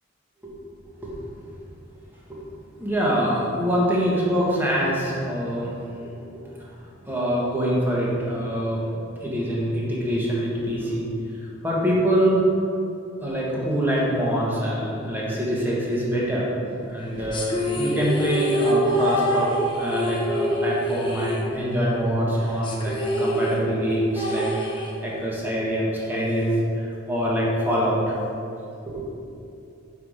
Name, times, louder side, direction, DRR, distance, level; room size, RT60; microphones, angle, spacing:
voice 1, 2.8-5.8 7.1-8.8 9.2-11.1 11.6-12.4 13.2-16.5 16.8-19.5 19.7-24.5 25.0-28.2 28.8-29.2, equal, 10° right, -5 dB, 1.2 m, -24 dB
sound 1, 17.3-22.0 22.2-22.3 22.6-25.3, equal, 25° left, 0.7 m, -25 dB
5.6 x 4.7 x 4.9 m, 2.6 s
head